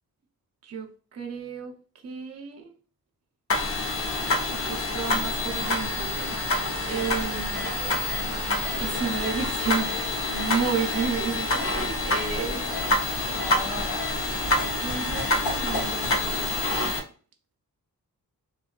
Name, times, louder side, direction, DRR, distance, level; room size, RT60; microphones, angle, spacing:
voice 1, 0.6-1.8 2.0-2.7 4.3-6.4 6.9-7.6 8.8-9.9 10.3-12.7 14.8-16.7, right 6 dB, 45° right, 0.5 m, -32 dB
sound 1, 3.5-17.0, left 2 dB, 40° left, 0.6 m, -27 dB
sound 2, 6.7-16.2, left 1 dB, 90° left, 1.1 m, -37 dB
2.6 x 2.4 x 2.2 m
cardioid pair, 85°, 36 cm